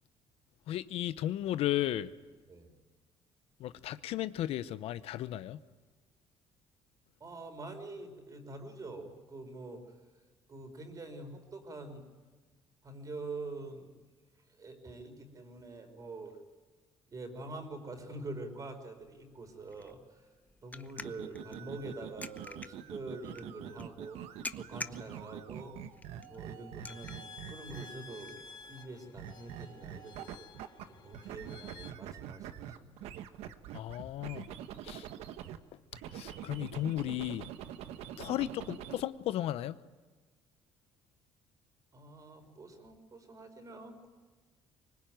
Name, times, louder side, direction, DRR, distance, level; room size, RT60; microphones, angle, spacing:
voice 1, 0.7-2.1 3.6-5.6 33.7-34.5 34.8-35.1 36.1-37.4 38.2-39.8, left 13 dB, 75° left, 0.8 m, -34 dB
voice 2, 7.2-9.8 10.5-12.0 12.8-13.9 14.6-16.4 17.1-20.0 20.6-24.2 24.6-25.8 26.3-27.2 27.5-30.5 30.9-33.1 37.9-38.1 41.9-44.1, right 2 dB, 35° right, 4.5 m, -45 dB
sound 1, 19.0-30.3, left 3 dB, 15° left, 0.8 m, -50 dB
sound 2, 21.0-28.2 29.2-30.9 31.1-35.6 35.9-39.0, right 10 dB, 85° right, 1.2 m, -45 dB
sound 3, 26.9-31.9, left 5 dB, 45° left, 1.4 m, -52 dB
24.5 x 20.5 x 9.3 m
cardioid pair, 105°, 10 cm